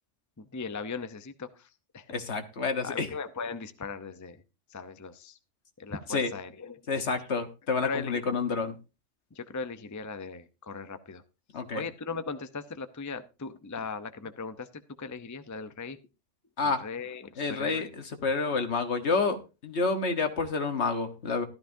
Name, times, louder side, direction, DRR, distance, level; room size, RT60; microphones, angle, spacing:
voice 1, 0.4-2.4 2.8-4.4 4.7-5.4 5.8-7.1 7.8-8.2 9.3-11.2 11.7-16.0 16.6-17.9, left 4 dB, 20° left, 10 dB, 0.6 m, -38 dB
voice 2, 2.1-3.1 6.1-6.3 6.9-8.7 11.5-11.8 16.6-16.8 17.4-17.9 18.2-21.4, left 4 dB, 65° left, 8 dB, 1.6 m, -29 dB
14.5 x 13.0 x 2.7 m, 0.29 s
omnidirectional pair, 1.2 m